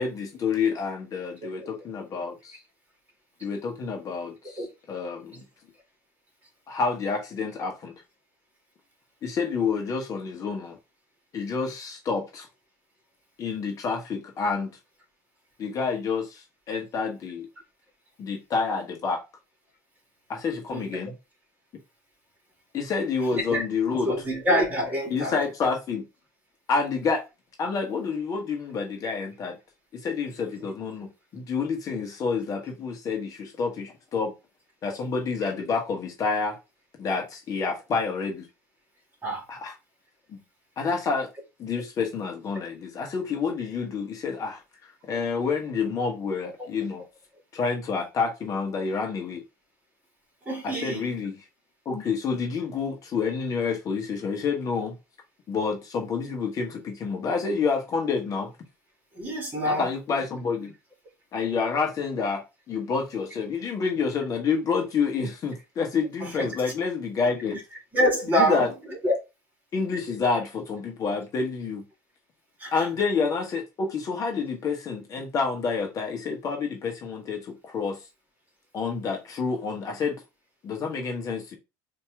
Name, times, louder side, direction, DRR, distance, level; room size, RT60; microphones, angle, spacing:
voice 1, 0.0-2.6 3.4-4.6 4.9-5.4 6.7-7.9 9.2-10.8 11.3-12.5 13.4-14.7 15.6-17.5 18.2-19.2 20.3-21.1 22.7-24.1 25.1-26.0 26.7-27.2 27.6-29.5 29.9-34.3 34.8-36.6 37.0-38.5 39.5-39.7 40.3-40.4 40.8-41.3 41.6-47.0 47.5-49.4 50.6-51.4 51.8-54.9 55.5-58.5 59.6-60.7 61.3-67.6 68.3-68.7 69.7-71.8 72.7-78.0 78.7-80.2 80.6-81.5, left 5 dB, 40° left, 1.3 m, -28 dB
voice 2, 23.3-23.6 24.1-25.4 39.2-39.4 46.6-46.7 50.5-51.1 59.1-59.9 66.2-66.5 67.5-67.6 67.9-69.1 72.6-72.9, equal, 20° right, 2.5 m, -26 dB
4.4 x 2.9 x 3.5 m
supercardioid pair, 95°, 9 cm